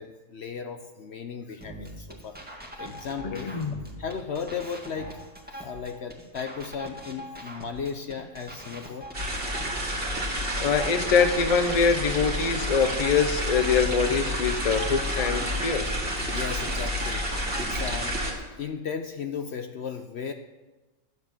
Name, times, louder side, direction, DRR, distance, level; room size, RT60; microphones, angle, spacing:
voice 1, 0.0-2.4 2.8-3.5 4.0-5.2 5.5-9.1 16.2-18.2 18.6-20.3, left 6 dB, 60° left, 7 dB, 0.9 m, -35 dB
sound 1, 1.6-17.6, right 1 dB, 5° right, 1.7 m, -42 dB
voice 2, 3.2-3.7 10.6-15.9, left 5 dB, 35° left, 8 dB, 0.8 m, -24 dB
sound 2, 9.1-18.3, equal, 45° right, 2.3 m, -29 dB
11.5 x 7.6 x 7.3 m, 1.2 s
omnidirectional pair, 1.4 m